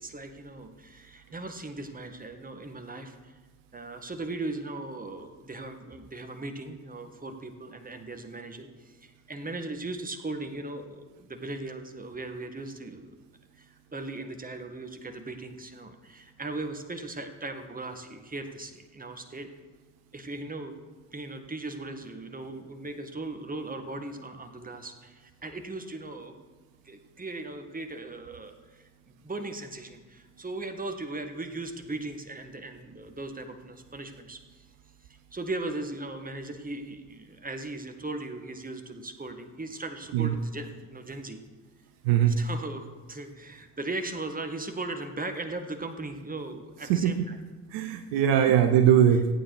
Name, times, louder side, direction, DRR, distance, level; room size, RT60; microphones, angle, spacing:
voice 1, 0.0-3.4 3.7-13.2 13.5-19.5 20.1-20.7 21.1-26.3 26.8-34.7 35.1-41.4 42.4-47.4, right 2 dB, 20° right, 7 dB, 1.6 m, -38 dB
voice 2, 42.0-42.4 46.9-47.3 47.7-49.3, right 9 dB, 70° right, 8 dB, 0.9 m, -21 dB
15.0 x 8.8 x 4.8 m, 1.3 s
figure-of-eight pair, 45°, 46 cm